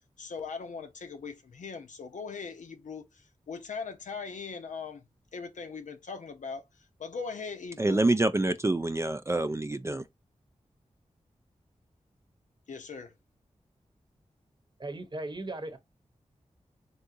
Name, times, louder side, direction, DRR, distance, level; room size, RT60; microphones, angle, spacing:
voice 1, 0.2-3.1 3.5-6.7 7.0-8.0 12.7-13.1, left 5 dB, 80° left, 0.7 m, -40 dB
voice 2, 7.8-10.0, right 2 dB, 20° right, 0.3 m, -26 dB
voice 3, 14.8-15.8, right 2 dB, 35° right, 0.9 m, -37 dB
3.5 x 2.7 x 2.5 m
cardioid pair, 45°, 13 cm